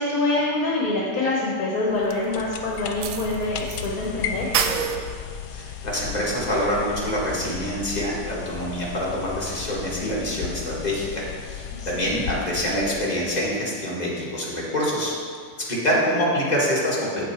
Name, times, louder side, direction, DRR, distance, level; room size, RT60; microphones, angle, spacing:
voice 1, 0.0-4.5 11.8-12.1, left 2 dB, 65° left, -3 dB, 1.5 m, -25 dB
sound 1, 1.9-13.7, left 7 dB, 85° left, 1.2 m, -35 dB
sound 2, 2.1-2.2 3.0-3.9 4.1-4.2 4.5-5.0, right 7 dB, 70° right, 0.9 m, -25 dB
voice 2, 5.5-15.1 15.6-17.3, equal, 25° left, -6 dB, 1.9 m, -26 dB
7.9 x 6.8 x 4.6 m, 2.1 s
omnidirectional pair, 1.7 m